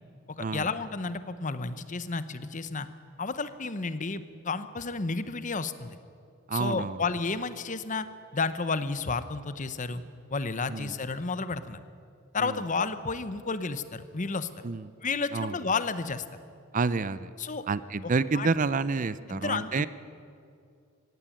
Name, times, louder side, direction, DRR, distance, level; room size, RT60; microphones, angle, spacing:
voice 1, 0.3-2.9 3.2-6.0 6.5-8.1 8.3-10.0 10.3-11.8 12.3-14.5 15.0-16.2 17.4-17.6 18.0-18.5 19.3-19.9, left 4 dB, 35° left, 13 dB, 0.9 m, -31 dB
voice 2, 6.5-7.0 10.7-10.9 12.4-12.6 14.6-14.9 15.3-15.6 16.7-17.3 17.7-19.9, right 4 dB, 40° right, 16 dB, 0.5 m, -29 dB
16.5 x 16.5 x 10.0 m, 2.4 s
head